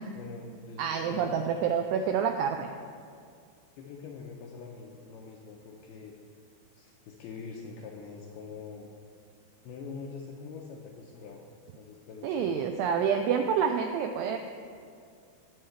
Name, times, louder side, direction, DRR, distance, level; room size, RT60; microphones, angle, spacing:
voice 1, 0.1-1.5 3.7-6.2 6.7-8.9 9.6-11.4 11.8-12.5, left 4 dB, 85° left, 0 dB, 2.3 m, -44 dB
voice 2, 0.8-2.7 12.2-14.4, right 7 dB, 85° right, 5 dB, 2.3 m, -28 dB
19.5 x 7.2 x 3.3 m, 2.3 s
omnidirectional pair, 5.2 m